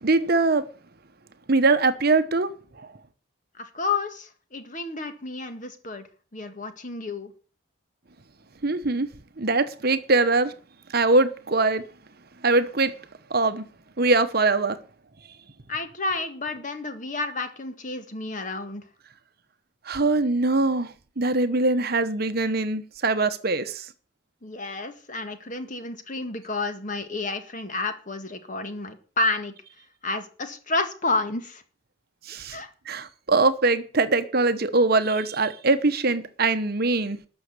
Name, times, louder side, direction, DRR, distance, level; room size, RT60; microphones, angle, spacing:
voice 1, 0.0-0.7 1.5-2.5 2.8-2.9 8.6-9.1 9.4-10.5 10.9-11.8 12.4-12.9 13.3-13.7 14.0-14.8 19.8-23.9 32.2-32.6 32.9-37.2, right 3 dB, 50° right, 1.0 m, -22 dB
voice 2, 3.5-6.1 6.3-7.3 15.7-18.8 24.4-29.5 30.0-31.6 32.5-32.7, left 3 dB, 40° left, 1.9 m, -30 dB
13.0 x 6.4 x 9.6 m
head